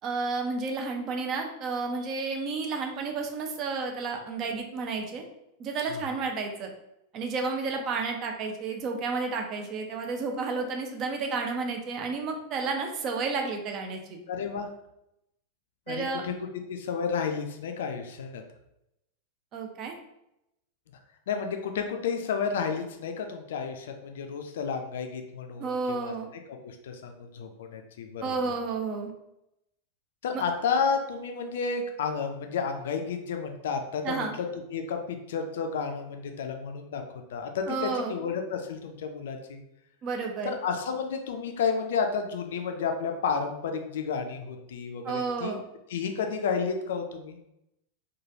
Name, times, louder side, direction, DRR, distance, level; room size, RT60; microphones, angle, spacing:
voice 1, 0.0-5.2 5.6-6.7 7.1-14.2 15.9-16.2 19.5-19.9 25.6-26.3 28.2-29.1 30.3-30.4 34.0-34.4 37.7-38.1 40.0-40.6 45.0-45.6, right 4 dB, 35° right, 3 dB, 0.5 m, -31 dB
voice 2, 14.3-14.7 15.9-18.4 21.3-26.1 26.6-28.5 30.2-37.0 37.3-39.6 40.4-45.6 45.9-47.4, left 5 dB, 60° left, 5 dB, 0.3 m, -31 dB
3.1 x 2.3 x 2.6 m, 0.84 s
figure-of-eight pair, 90°, 0 cm